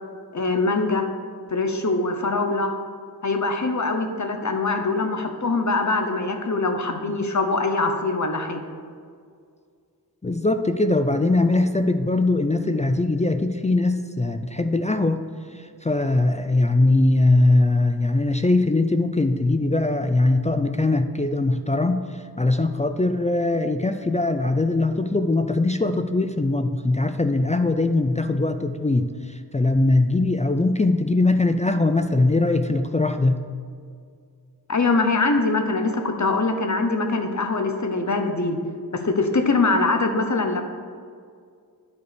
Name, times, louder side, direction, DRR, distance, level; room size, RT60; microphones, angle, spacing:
voice 1, 0.3-1.1 1.5-2.7 3.2-8.6 34.7-38.6 38.9-40.6, left 3 dB, 45° left, 6 dB, 1.0 m, -23 dB
voice 2, 10.2-15.3 15.5-33.4, left 2 dB, 20° left, 8 dB, 0.4 m, -21 dB
9.6 x 4.6 x 6.7 m, 2.1 s
wide cardioid pair, 65°, 38 cm